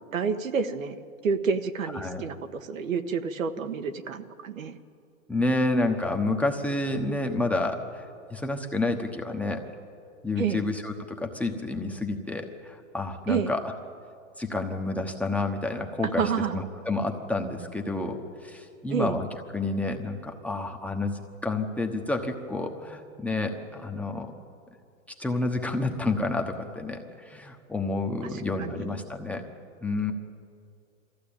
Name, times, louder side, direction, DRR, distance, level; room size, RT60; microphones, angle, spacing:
voice 1, 0.1-1.0 1.2-4.8 10.4-10.6 13.3-13.5 16.0-16.6 18.9-19.2 28.6-29.0, right 6 dB, 80° right, 8 dB, 1.5 m, -29 dB
voice 2, 5.3-9.6 10.2-13.7 14.4-19.3 19.5-24.3 25.2-29.4 29.8-30.1, left 2 dB, 5° left, 3 dB, 1.1 m, -29 dB
23.0 x 15.0 x 8.8 m, 2.3 s
hypercardioid pair, 135°, 39 cm